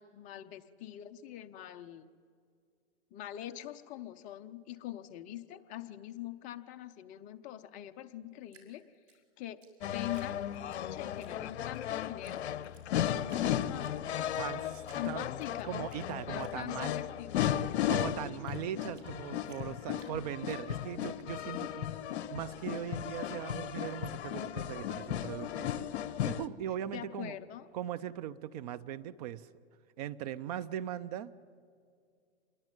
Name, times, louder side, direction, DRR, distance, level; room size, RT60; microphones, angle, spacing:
voice 1, 0.0-2.0 3.1-8.8 9.4-12.5 13.0-14.0 14.9-15.8 16.3-18.9 26.9-27.7, left 13 dB, 20° left, 9 dB, 0.7 m, -44 dB
Drip, 8.5-10.8 11.2-11.8 12.2-12.4 12.6-13.5 13.8-14.4 14.8-16.0 16.4-19.1 19.5-21.1, right 5 dB, 85° right, 6.1 m, -61 dB
sound 1, 9.8-26.5, left 10 dB, 60° left, 1.1 m, -35 dB
voice 2, 14.4-15.2 15.6-16.9 17.9-21.9 22.3-25.8 26.3-27.3 27.7-29.5 30.0-31.4, right 11 dB, 35° right, 15 dB, 0.6 m, -39 dB
27.5 x 22.0 x 9.2 m, 2.2 s
hypercardioid pair, 145°, 36 cm